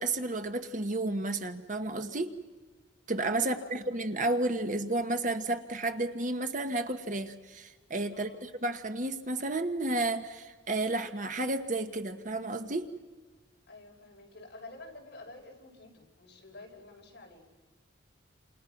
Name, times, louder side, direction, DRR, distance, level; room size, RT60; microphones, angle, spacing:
voice 1, 0.0-2.3 3.1-12.9, right 2 dB, 40° right, 7 dB, 1.2 m, -32 dB
voice 2, 3.4-3.8 8.1-8.5 13.7-17.5, left 2 dB, 60° left, 0 dB, 5.3 m, -50 dB
29.0 x 27.5 x 5.9 m, 1.3 s
head